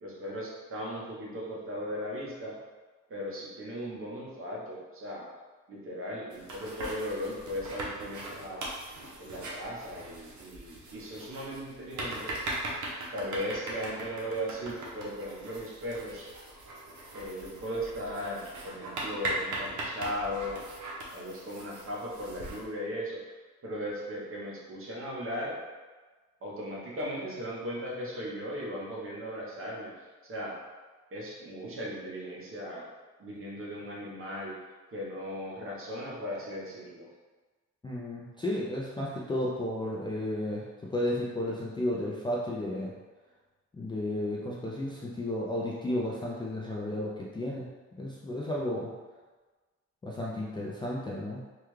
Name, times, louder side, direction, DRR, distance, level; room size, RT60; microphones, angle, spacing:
voice 1, 0.0-2.6 3.1-5.3 5.7-8.7 9.2-12.3 13.1-16.3 17.1-20.6 21.1-23.2 23.6-25.6 26.4-30.6 31.1-32.8 33.2-34.6 34.9-37.1, equal, 45° right, -4 dB, 0.9 m, -37 dB
sound 1, 6.3-22.6, right 2 dB, 75° right, 0.8 m, -40 dB
voice 2, 37.8-40.6 40.9-42.9 43.7-47.7 48.0-48.9 50.0-51.4, left 1 dB, 15° left, -5 dB, 0.3 m, -33 dB
3.5 x 2.2 x 3.1 m, 1.3 s
cardioid pair, 145°, 30 cm